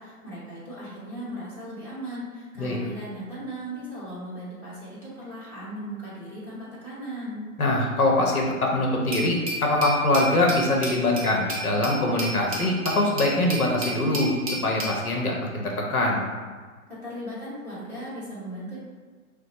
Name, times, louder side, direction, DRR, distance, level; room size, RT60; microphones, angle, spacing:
voice 1, 0.0-7.4 16.9-18.8, right 1 dB, 5° left, -12 dB, 0.8 m, -37 dB
voice 2, 7.6-14.3 14.6-16.2, left 2 dB, 75° left, -1 dB, 0.9 m, -23 dB
Glass, 9.1-15.0, right 1 dB, 25° right, 0.4 m, -33 dB
5.9 x 2.1 x 2.9 m, 1.5 s
hypercardioid pair, 140°, 44 cm